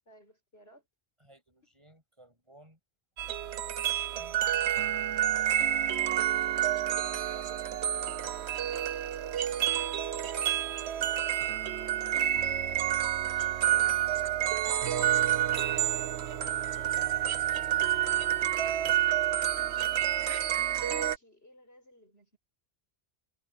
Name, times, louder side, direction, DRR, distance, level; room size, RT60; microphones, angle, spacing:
voice 1, 0.1-0.9 6.0-6.6 9.4-10.0 12.1-12.6 13.6-14.6 15.0-18.4 20.6-22.4, left 1 dB, 70° left, 7.5 m, -58 dB
voice 2, 1.2-2.8 3.6-4.9 7.3-8.3 18.8-19.4, right 1 dB, 25° right, 6.9 m, -59 dB
sound 1, 3.2-21.2, right 11 dB, 85° right, 1.1 m, -29 dB
omnidirectional pair, 1.1 m